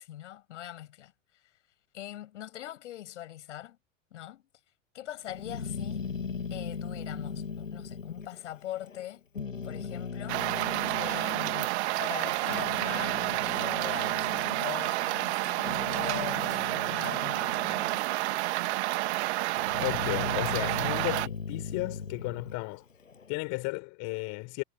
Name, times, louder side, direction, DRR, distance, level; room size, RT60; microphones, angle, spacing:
voice 1, 0.0-1.5 1.9-3.8 4.1-4.4 4.9-6.1 6.5-9.3 9.6-10.5 11.0-11.7 12.0-14.3 14.6-17.6, left 13 dB, 65° left, 7.0 m, -42 dB
Growling, 5.3-9.0 9.3-11.7 12.2-18.1 18.4-19.1 19.6-23.3, left 5 dB, 80° left, 6.5 m, -38 dB
sound 1, 10.3-21.3, right 19 dB, 55° right, 1.8 m, -30 dB
voice 2, 19.8-22.9 23.3-24.6, left 27 dB, 45° left, 5.8 m, -34 dB
figure-of-eight pair, 85°, 39 cm